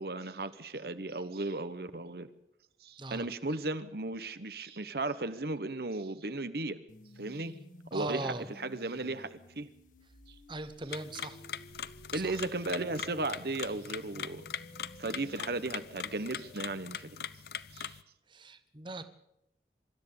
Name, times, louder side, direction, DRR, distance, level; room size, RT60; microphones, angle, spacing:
voice 1, 0.0-2.3 2.8-6.8 7.2-7.6 7.9-9.7 10.3-10.4 12.1-14.5 15.0-17.3 17.7-18.0, right 2 dB, 60° right, 12 dB, 1.1 m, -36 dB
sound 1, 6.9-16.9, left 1 dB, 45° left, 1.9 m, -54 dB
voice 2, 7.9-8.4 10.5-11.4 12.1-12.4 18.3-19.0, right 2 dB, 25° right, 11 dB, 1.1 m, -39 dB
sound 2, 10.9-18.0, left 8 dB, 65° left, 0.7 m, -42 dB
24.0 x 13.0 x 8.6 m, 0.84 s
head